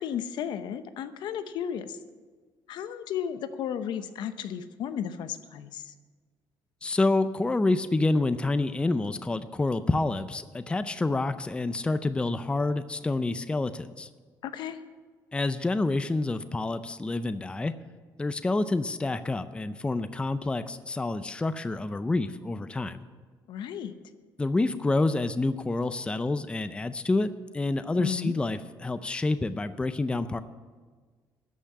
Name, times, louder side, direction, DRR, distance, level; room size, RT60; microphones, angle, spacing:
voice 1, 0.0-2.0 2.7-5.9 14.4-14.8 23.5-23.9 27.9-28.3, left 9 dB, 70° left, 11 dB, 0.8 m, -34 dB
voice 2, 6.8-14.1 15.3-17.7 18.2-23.0 24.4-27.3 27.5-30.4, left 2 dB, 15° left, 12 dB, 0.5 m, -28 dB
13.5 x 5.8 x 9.4 m, 1.5 s
cardioid pair, 115°, 8 cm